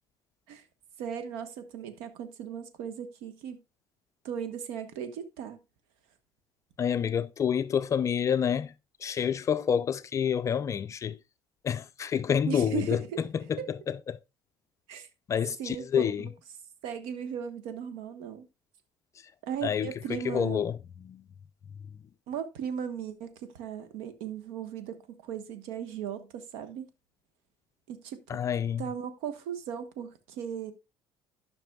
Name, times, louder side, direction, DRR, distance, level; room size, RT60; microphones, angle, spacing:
voice 1, 1.0-3.6 4.2-5.6 12.4-13.2 13.6-13.7 14.9-15.1 15.6-16.3 16.8-18.4 19.4-20.6 22.3-26.9 27.9-28.2 28.8-30.7, right 8 dB, 85° right, 1.2 m, -37 dB
voice 2, 6.8-8.7 9.0-11.2 11.6-13.0 13.5-14.2 15.3-16.3 19.6-20.8 21.0-21.2 28.3-28.9, left 8 dB, 35° left, 0.4 m, -28 dB
12.5 x 5.9 x 2.3 m
cardioid pair, 120°, 9 cm